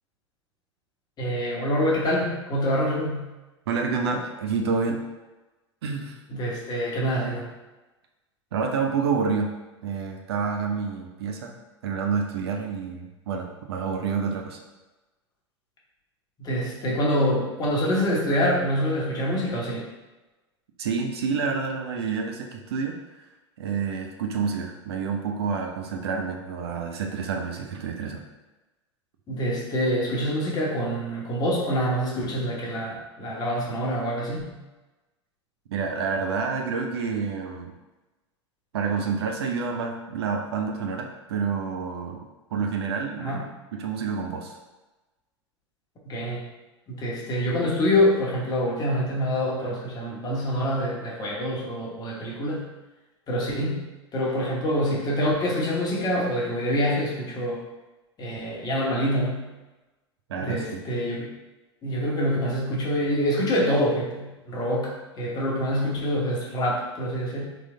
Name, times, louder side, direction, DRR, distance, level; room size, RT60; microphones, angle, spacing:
voice 1, 1.2-3.3 6.3-7.5 16.4-19.9 29.3-34.6 43.2-43.4 46.0-46.4 46.9-52.6 53.3-53.8 54.1-57.6 58.2-59.4 60.4-61.3 61.8-67.4, equal, 25° left, -3 dB, 1.1 m, -26 dB
voice 2, 3.7-5.0 5.8-6.2 8.5-9.5 9.8-11.5 11.8-14.6 20.8-23.0 23.6-28.2 35.7-37.7 38.7-42.2 42.5-43.4 43.7-44.6 53.5-53.6 60.3-60.8, right 5 dB, 60° right, 3 dB, 0.6 m, -28 dB
3.8 x 3.2 x 3.7 m, 1.1 s
figure-of-eight pair, 85°, 15 cm